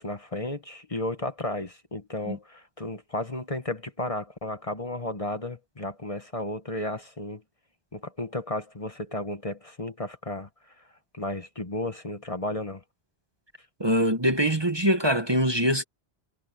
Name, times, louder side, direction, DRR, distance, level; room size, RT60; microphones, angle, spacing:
voice 1, 0.0-7.4 7.9-10.5 11.1-12.8, left 1 dB, 30° left, 1.5 m, -33 dB
voice 2, 13.8-15.8, equal, 25° right, 1.4 m, -23 dB
omnidirectional pair, 1.1 m